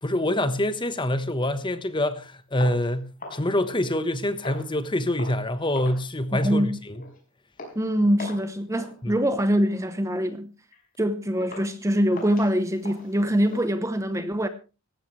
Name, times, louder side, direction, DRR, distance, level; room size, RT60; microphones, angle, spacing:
voice 1, 0.0-7.0 9.0-9.1, left 1 dB, 20° left, 1.1 m, -26 dB
sound 1, 2.6-4.1 4.4-4.8 5.2-5.5 5.7-6.1 6.4-6.6 6.9-7.2 7.6-7.8 8.2-8.5 8.8-9.0 9.4-9.6 10.1-10.2 10.7-10.8 11.4-11.7 12.1-13.6, left 2 dB, 40° left, 5.2 m, -41 dB
voice 2, 6.3-6.8 7.7-10.5 11.0-14.5, equal, 15° right, 0.8 m, -24 dB
17.5 x 15.0 x 3.2 m
head